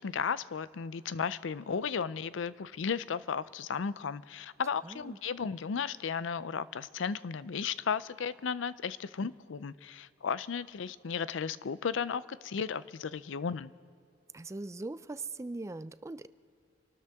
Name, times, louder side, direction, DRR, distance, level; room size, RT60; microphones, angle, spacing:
voice 1, 0.0-13.7, left 6 dB, 90° left, 17 dB, 0.5 m, -34 dB
voice 2, 4.8-5.2 14.3-16.3, right 2 dB, 15° right, 14 dB, 0.4 m, -40 dB
27.0 x 13.0 x 3.6 m, 2.4 s
head